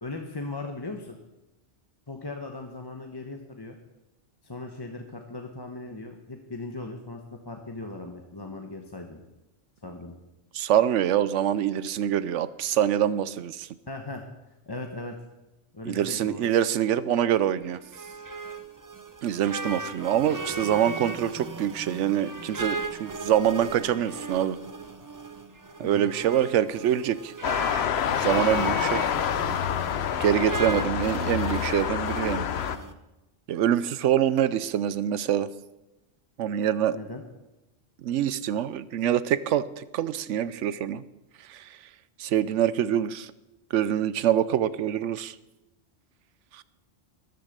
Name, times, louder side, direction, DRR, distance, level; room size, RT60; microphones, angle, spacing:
voice 1, 0.0-1.2 2.1-3.8 4.4-9.2 9.8-10.2 13.9-14.2 14.7-15.2 15.7-16.5 25.8-26.1 36.9-37.2, left 2 dB, 20° left, 3 dB, 1.0 m, -38 dB
voice 2, 10.5-13.7 15.9-17.8 19.2-24.6 25.8-27.3 28.2-29.0 30.2-32.5 33.5-35.5 36.4-37.0 38.0-41.0 41.5-41.7 42.2-43.3 43.7-45.3 46.5-46.6, right 10 dB, 90° right, 16 dB, 1.0 m, -25 dB
sound 1, 17.6-32.9, right 3 dB, 20° right, 0.6 m, -37 dB
sound 2, 27.4-32.8, left 9 dB, 65° left, 0.9 m, -27 dB
13.5 x 11.0 x 6.6 m, 1.0 s
omnidirectional pair, 1.2 m